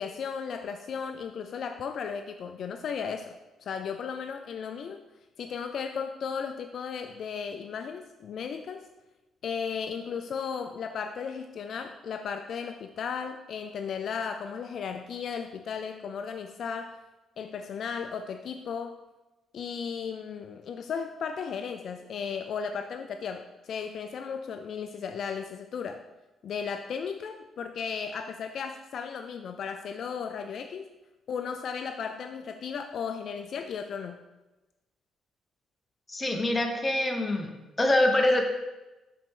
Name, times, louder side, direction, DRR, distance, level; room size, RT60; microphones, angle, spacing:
voice 1, 0.0-5.0 5.4-8.9 9.4-17.0 17.4-19.0 19.5-26.0 26.4-30.9 31.3-34.2, left 6 dB, 60° left, 7 dB, 0.3 m, -35 dB
voice 2, 36.1-37.5 37.8-38.5, left 1 dB, 20° left, 3 dB, 1.0 m, -24 dB
7.4 x 4.3 x 3.7 m, 1.1 s
cardioid pair, 90°, 0 cm